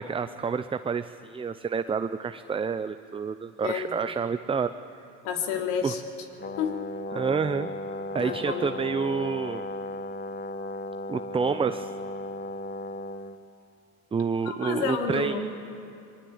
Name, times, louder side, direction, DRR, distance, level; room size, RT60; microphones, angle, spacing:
voice 1, 0.0-4.7 5.8-5.9 7.1-7.7 8.1-9.6 11.1-11.9 14.1-15.4, right 5 dB, 10° right, 10 dB, 0.6 m, -28 dB
voice 2, 5.2-6.0 6.6-6.8 8.2-8.7 14.4-15.4, left 7 dB, 70° left, 3 dB, 3.3 m, -30 dB
Brass instrument, 6.4-13.4, left 2 dB, 20° left, 1.2 m, -36 dB
23.0 x 20.0 x 8.7 m, 2.6 s
hypercardioid pair, 90°, 44 cm